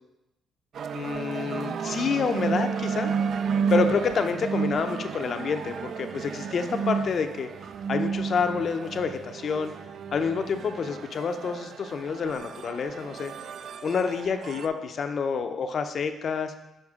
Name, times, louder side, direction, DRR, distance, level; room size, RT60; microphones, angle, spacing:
sound 1, 0.7-14.7, right 6 dB, 60° right, 0.3 m, -32 dB
voice 1, 0.9-3.1 3.7-7.5 7.9-9.7 10.1-13.3 13.8-16.5, left 5 dB, 55° left, 7 dB, 0.6 m, -28 dB
6.5 x 5.2 x 3.6 m, 0.95 s
cardioid pair, 90°, 0 cm